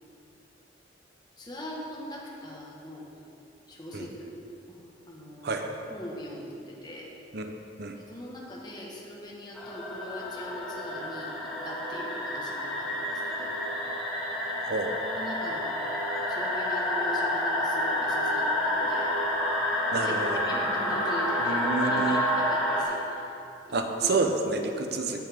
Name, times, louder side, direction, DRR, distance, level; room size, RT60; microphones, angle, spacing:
voice 1, 1.4-3.1 3.7-4.3 4.7-4.8 5.1-7.1 8.1-13.6 15.0-15.7 16.3-19.1 20.0-23.4 23.7-24.2, equal, 25° left, -3 dB, 1.5 m, -41 dB
sound 1, 9.5-22.8, left 1 dB, ahead, 1.5 m, -29 dB
voice 2, 19.9-20.4 21.4-22.2 23.7-25.2, right 3 dB, 60° right, 4 dB, 0.8 m, -29 dB
16.0 x 5.6 x 3.6 m, 2.8 s
head